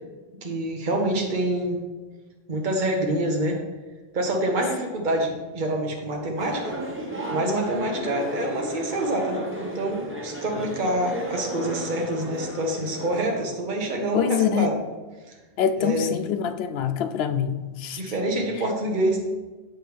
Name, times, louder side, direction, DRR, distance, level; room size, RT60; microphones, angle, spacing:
voice 1, 0.4-1.8 2.5-3.6 4.1-6.8 7.3-14.8 15.8-16.1 18.0-19.2, right 1 dB, 50° right, 0 dB, 1.2 m, -26 dB
sound 1, 6.4-13.4, right 1 dB, 10° right, 1.2 m, -34 dB
voice 2, 14.1-14.7 15.6-18.0, left 8 dB, 80° left, 9 dB, 0.8 m, -25 dB
8.0 x 6.6 x 3.4 m, 1.3 s
omnidirectional pair, 1.0 m